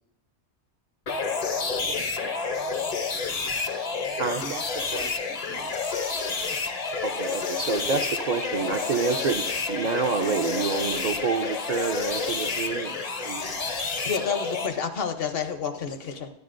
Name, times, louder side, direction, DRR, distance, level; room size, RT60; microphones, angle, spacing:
sound 1, 1.1-14.7, left 4 dB, 45° left, 0.6 m, -29 dB
voice 1, 1.9-2.4 4.4-5.9, right 6 dB, 75° right, 7 dB, 1.0 m, -40 dB
voice 2, 7.0-13.7, right 5 dB, 55° right, 6 dB, 0.5 m, -28 dB
voice 3, 14.0-16.3, left 6 dB, 60° left, 7 dB, 1.0 m, -29 dB
12.0 x 10.0 x 2.5 m, 0.84 s
omnidirectional pair, 1.1 m